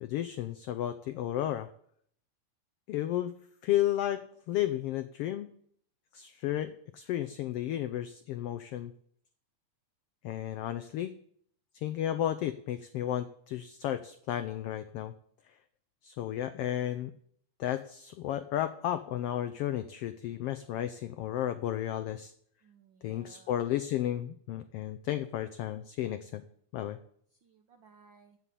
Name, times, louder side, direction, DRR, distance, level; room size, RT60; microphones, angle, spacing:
voice 1, 0.0-1.7 2.9-3.3 3.6-5.5 6.1-8.9 10.2-11.1 11.7-15.1 16.0-17.1 17.6-22.3 23.0-26.4 26.7-27.0, left 12 dB, 85° left, 10 dB, 1.3 m, -33 dB
voice 2, 22.6-23.6 27.3-28.4, right 5 dB, 75° right, 5 dB, 1.1 m, -60 dB
14.5 x 5.7 x 8.3 m, 0.65 s
omnidirectional pair, 3.4 m